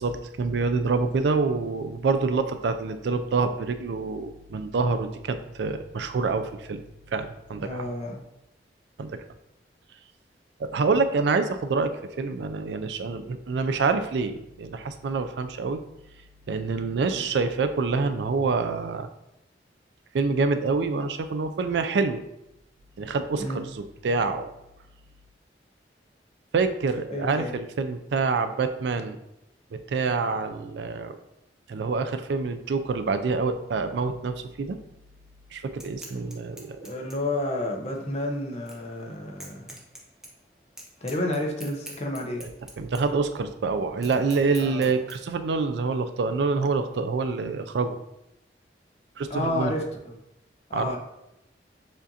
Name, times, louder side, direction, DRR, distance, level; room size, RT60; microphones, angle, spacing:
voice 1, 0.0-6.8 7.1-7.8 9.0-9.2 10.6-11.9 12.2-15.8 16.5-19.1 20.1-22.2 23.0-24.5 26.5-29.2 29.7-31.1 31.7-34.8 35.5-36.9 42.4-42.5 42.8-48.0 49.2-49.7 50.7-51.0, right 4 dB, 75° right, 9 dB, 0.4 m, -26 dB
voice 2, 7.6-8.2 17.0-17.3 23.4-23.6 27.1-27.5 36.8-39.8 41.0-42.5 44.6-44.9 49.3-50.2 50.7-51.0, left 1 dB, 35° left, 1 dB, 0.6 m, -30 dB
sound 1, 35.6-45.1, right 1 dB, 5° right, 0.6 m, -47 dB
7.1 x 2.5 x 2.7 m, 0.86 s
head